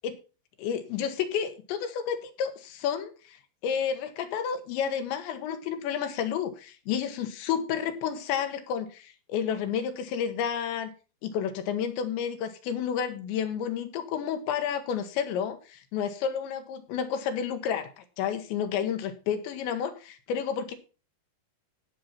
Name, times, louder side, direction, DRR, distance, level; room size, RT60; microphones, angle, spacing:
voice 1, 0.6-3.4 3.6-10.9 11.2-20.8, left 8 dB, 90° left, 7 dB, 3.6 m, -31 dB
17.5 x 5.9 x 4.2 m, 0.33 s
omnidirectional pair, 5.0 m